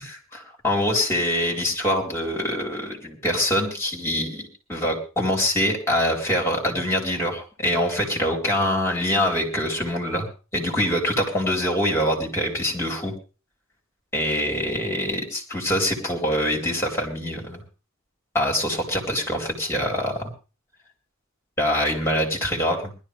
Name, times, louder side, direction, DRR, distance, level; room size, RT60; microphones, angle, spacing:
voice 1, 0.3-10.3 10.5-13.1 14.1-17.6 18.3-20.3 21.6-22.9, equal, 15° left, 1 dB, 4.6 m, -24 dB
20.5 x 13.0 x 3.4 m, 0.34 s
head